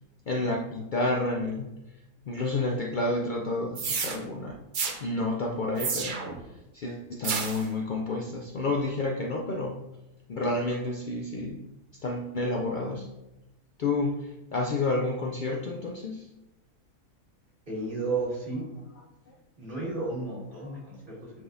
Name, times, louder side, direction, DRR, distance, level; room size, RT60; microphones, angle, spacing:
voice 1, 0.3-1.7 2.3-4.6 5.0-6.2 6.7-9.8 10.3-11.6 12.0-13.1 13.8-16.3, left 2 dB, 85° left, -1 dB, 0.4 m, -30 dB
sound 1, 3.8-4.2 4.7-5.0 5.8-6.4 7.2-7.7, right 5 dB, 50° right, 0.6 m, -30 dB
voice 2, 17.7-18.6 19.6-21.4, right 3 dB, 35° right, -6 dB, 2.2 m, -33 dB
9.1 x 4.0 x 2.6 m, 0.97 s
omnidirectional pair, 1.5 m